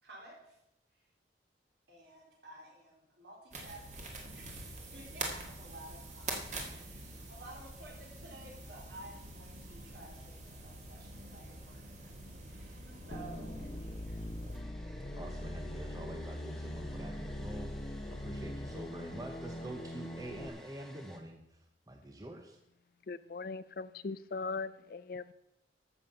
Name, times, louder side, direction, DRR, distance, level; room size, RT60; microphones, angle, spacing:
voice 1, 0.0-0.6 0.9-1.1 1.9-6.4 6.8-14.3, right 1 dB, 70° right, -3 dB, 4.0 m, -53 dB
sound 1, 3.5-14.6, right 2 dB, 40° right, 1.9 m, -45 dB
sound 2, 13.1-20.5, left 1 dB, 30° left, 0.8 m, -42 dB
Domestic sounds home sounds, 14.5-21.2, left 1 dB, 5° left, 1.1 m, -56 dB
voice 2, 15.2-22.6, right 1 dB, 20° right, 4 dB, 0.8 m, -46 dB
voice 3, 23.1-25.3, left 4 dB, 50° left, 16 dB, 0.4 m, -40 dB
13.0 x 7.5 x 5.5 m, 0.84 s
head